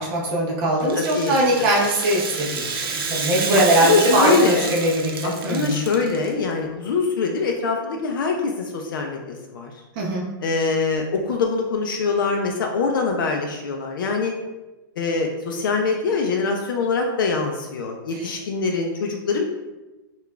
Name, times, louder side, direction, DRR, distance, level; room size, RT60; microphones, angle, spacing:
voice 1, 0.0-5.8 10.0-10.3, right 1 dB, 25° right, -4 dB, 0.5 m, -21 dB
Rattle (instrument), 0.8-6.3, right 5 dB, 85° right, 0.6 m, -29 dB
voice 2, 1.0-1.4 3.5-4.8 5.2-9.8 10.4-14.3 15.0-19.4, left 4 dB, 65° left, 2 dB, 0.4 m, -23 dB
4.7 x 2.3 x 2.3 m, 1.1 s
supercardioid pair, 175°, 12 cm